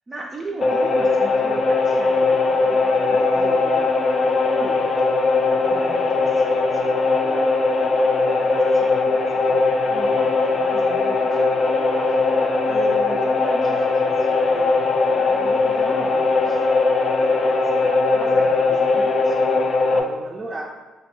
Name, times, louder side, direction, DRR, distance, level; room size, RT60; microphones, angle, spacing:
voice 1, 0.1-3.8 4.1-4.9 5.5-12.1 12.6-16.6 17.4-19.5 19.8-20.7, right 2 dB, 30° right, -2 dB, 0.4 m, -37 dB
sound 1, 0.6-20.0, left 3 dB, 50° left, 0.4 m, -19 dB
3.2 x 2.2 x 4.3 m, 1.2 s
cardioid pair, 90°, 0 cm